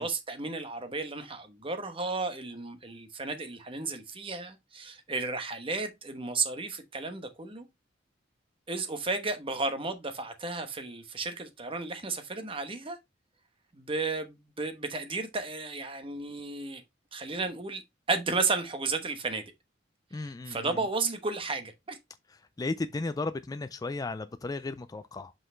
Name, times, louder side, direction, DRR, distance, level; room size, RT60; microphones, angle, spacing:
voice 1, 0.0-7.7 8.7-13.0 13.7-16.8 17.1-17.8 18.1-19.5 20.1-22.0, right 3 dB, 30° right, 1.1 m, -33 dB
voice 2, 20.1-20.8 22.6-25.3, left 3 dB, 20° left, 0.3 m, -35 dB
5.8 x 5.3 x 3.2 m
head